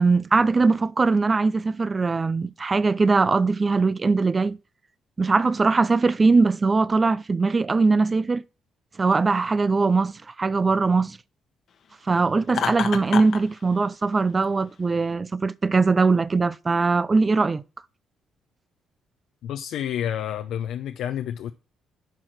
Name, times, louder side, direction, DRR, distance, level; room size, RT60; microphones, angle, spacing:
voice 1, 0.0-4.6 5.2-8.4 9.0-11.2 12.1-17.6, right 4 dB, 30° right, 0.5 m, -21 dB
Laughter, 12.5-13.4, left 7 dB, 60° left, 1.1 m, -27 dB
voice 2, 19.4-21.5, left 10 dB, 80° left, 0.6 m, -29 dB
10.5 x 4.8 x 5.9 m
cardioid pair, 90°, 0 cm